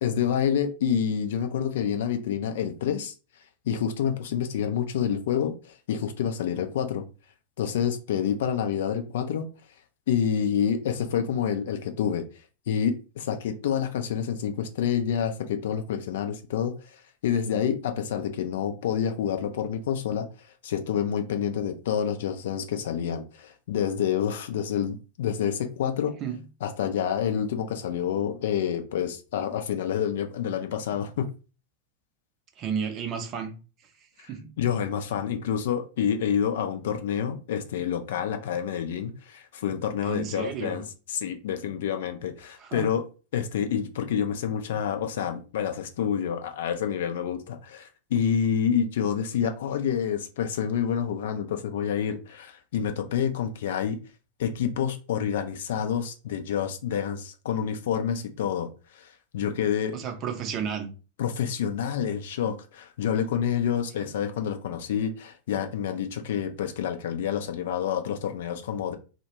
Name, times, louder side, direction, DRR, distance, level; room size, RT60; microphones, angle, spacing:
voice 1, 0.0-3.1 3.7-7.0 7.6-9.5 10.1-12.2 12.7-20.3 20.6-26.1 26.6-31.3 34.6-40.8 41.1-43.0 43.3-54.0 54.4-60.0 61.2-69.0, left 8 dB, 55° left, 6 dB, 0.4 m, -28 dB
voice 2, 32.6-33.5 33.8-33.9 34.2-34.5 40.0-40.9 42.4-42.9 59.9-60.9 64.0-64.1, right 7 dB, 35° right, 5 dB, 0.5 m, -33 dB
2.2 x 2.1 x 3.0 m, 0.33 s
figure-of-eight pair, 90°, 0 cm